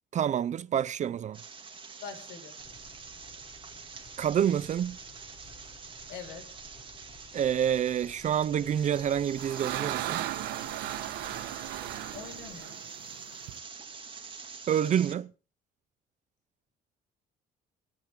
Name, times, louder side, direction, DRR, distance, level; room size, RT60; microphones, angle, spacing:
voice 1, 0.1-1.4 4.2-5.0 7.3-10.2 14.7-15.3, right 9 dB, 45° right, 0.6 m, -28 dB
sound 1, 1.3-15.1, right 5 dB, 30° right, 2.3 m, -46 dB
voice 2, 2.0-2.6 6.1-6.5 12.1-12.8, left 6 dB, 85° left, 5.3 m, -43 dB
sound 2, 2.6-12.6, left 2 dB, 50° left, 7.0 m, -55 dB
sound 3, 8.9-13.6, right 14 dB, 85° right, 1.3 m, -36 dB
24.5 x 9.1 x 3.7 m
cardioid pair, 110°, 17 cm